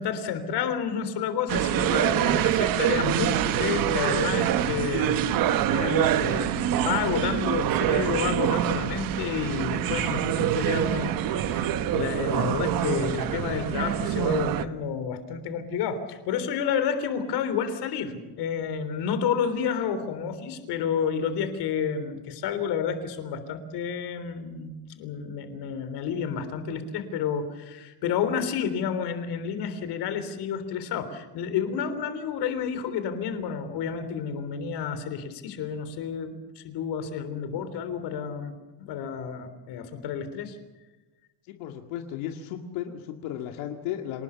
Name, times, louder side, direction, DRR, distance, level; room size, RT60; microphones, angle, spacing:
voice 1, 0.0-38.5 38.8-40.6, left 7 dB, 55° left, 10 dB, 3.6 m, -30 dB
sound 1, 1.5-14.6, right 11 dB, 45° right, 1.1 m, -25 dB
voice 2, 41.5-44.2, left 10 dB, 80° left, 3 dB, 2.2 m, -35 dB
26.5 x 19.5 x 7.1 m, 1.1 s
cardioid pair, 175°, 48 cm